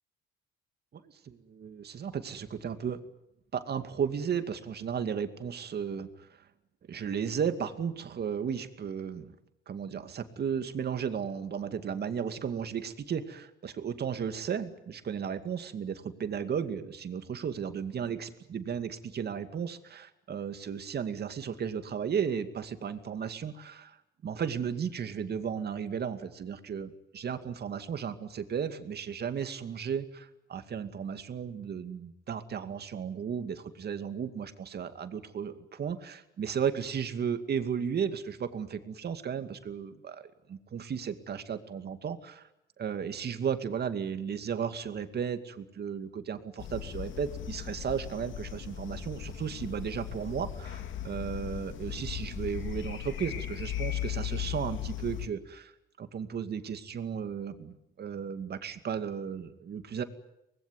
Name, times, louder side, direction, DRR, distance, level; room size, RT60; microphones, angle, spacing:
voice 1, 1.0-3.1 3.5-6.3 6.9-9.3 9.7-24.0 24.2-42.5 42.8-55.7 56.0-60.0, right 7 dB, 55° right, 9 dB, 2.4 m, -34 dB
sound 1, 46.6-55.3, left 11 dB, 75° left, 2.7 m, -37 dB
24.5 x 20.0 x 9.5 m, 0.85 s
cardioid pair, 90°, 20 cm